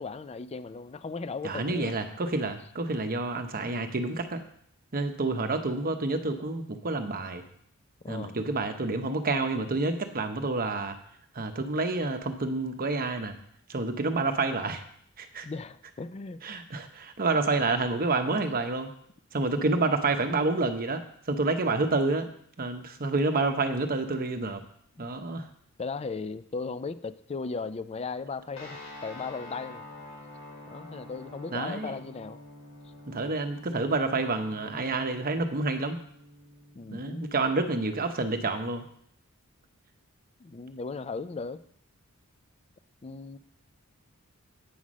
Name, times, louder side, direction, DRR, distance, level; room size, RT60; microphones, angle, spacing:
voice 1, 0.0-1.9 8.0-8.4 15.4-16.4 19.5-19.8 25.8-29.9 30.7-32.4 36.7-37.2 40.4-41.6 43.0-43.4, left 4 dB, 30° left, 13 dB, 0.4 m, -37 dB
voice 2, 1.4-4.4 4.9-7.4 8.1-11.0 11.3-13.3 13.7-14.8 15.2-15.5 16.4-18.9 19.3-21.0 21.3-22.2 22.6-24.6 25.0-25.5 31.5-31.9 33.1-36.0 36.9-38.9, right 3 dB, 40° right, 7 dB, 0.9 m, -28 dB
sound 1, 28.5-38.9, left 1 dB, 65° left, 2.5 m, -48 dB
8.6 x 5.8 x 6.2 m, 0.66 s
head